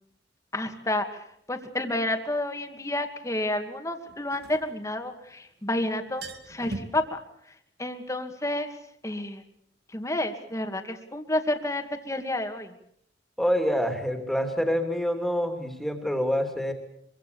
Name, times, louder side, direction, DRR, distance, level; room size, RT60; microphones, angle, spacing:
voice 1, 0.5-7.2 7.8-8.8 9.0-9.4 9.9-12.7, left 1 dB, 15° left, 6 dB, 2.3 m, -30 dB
sound 1, 1.6-1.7 4.1-5.4 5.7-5.8 6.0-7.0, right 2 dB, 60° right, 2.4 m, -40 dB
voice 2, 13.4-16.7, equal, ahead, 4 dB, 3.1 m, -26 dB
25.0 x 24.0 x 7.0 m, 0.73 s
head